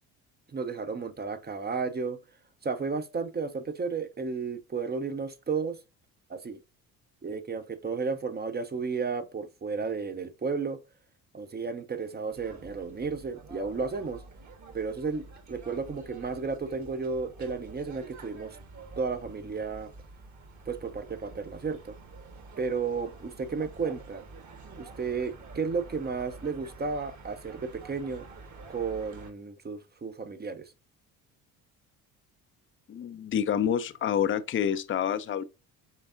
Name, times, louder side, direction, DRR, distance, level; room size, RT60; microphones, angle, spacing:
voice 1, 0.5-2.2 2.6-5.8 6.3-6.6 7.2-10.8 11.3-14.2 14.7-18.6 19.0-19.9 20.7-22.0 22.6-24.2 24.8-28.3 28.7-30.7, right 4 dB, 25° right, 0.7 m, -33 dB
sound 1, 12.3-29.3, right 3 dB, 40° right, 1.4 m, -48 dB
voice 2, 32.9-35.4, left 9 dB, 30° left, 0.5 m, -28 dB
5.7 x 3.5 x 2.6 m
hypercardioid pair, 60°, 43 cm